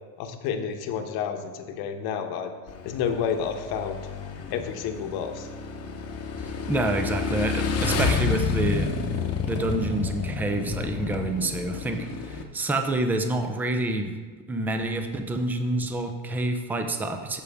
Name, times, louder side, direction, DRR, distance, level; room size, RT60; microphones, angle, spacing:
voice 1, 0.2-2.5 2.8-4.0 4.5-5.5, left 7 dB, 55° left, 6 dB, 1.1 m, -30 dB
Motorcycle / Engine, 2.7-12.4, left 5 dB, 35° left, 0.9 m, -30 dB
voice 2, 6.4-8.9 9.4-14.1 14.5-17.4, right 2 dB, 5° right, 6 dB, 0.4 m, -28 dB
13.5 x 5.2 x 3.5 m, 1.4 s
supercardioid pair, 130°, 45 cm